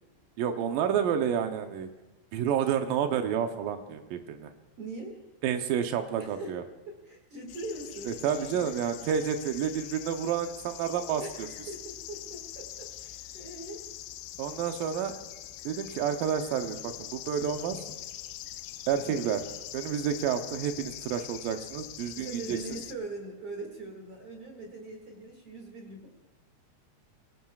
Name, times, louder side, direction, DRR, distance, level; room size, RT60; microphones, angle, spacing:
voice 1, 0.4-1.9 2.3-4.5 5.4-6.6 8.1-11.5 14.4-15.1 15.7-17.8 18.9-19.4 19.7-22.6, right 8 dB, 90° right, 6 dB, 1.9 m, -30 dB
voice 2, 4.8-5.2 6.1-6.6 6.9-8.7 11.2-13.8 22.1-26.1, right 2 dB, 45° right, 0 dB, 2.2 m, -42 dB
sound 1, 7.5-22.9, left 13 dB, 80° left, 2.7 m, -43 dB
23.0 x 17.0 x 2.4 m, 1.1 s
omnidirectional pair, 5.1 m